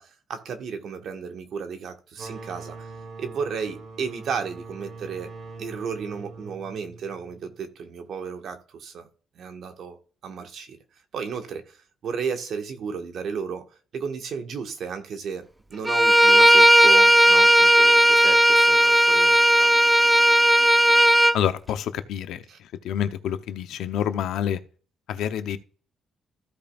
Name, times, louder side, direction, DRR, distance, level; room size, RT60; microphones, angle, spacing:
voice 1, 0.0-2.9 3.2-5.3 5.6-9.1 9.4-10.8 11.1-13.6 13.9-19.7 22.5-22.6, right 6 dB, 65° right, 1.7 m, -34 dB
sound 1, 2.1-7.6, right 4 dB, 45° right, 3.6 m, -42 dB
Bowed string instrument, 15.9-21.4, right 1 dB, 5° right, 0.4 m, -16 dB
voice 2, 21.3-24.6 25.1-25.6, left 9 dB, 80° left, 0.8 m, -28 dB
15.0 x 5.2 x 2.5 m
cardioid pair, 90°, 0 cm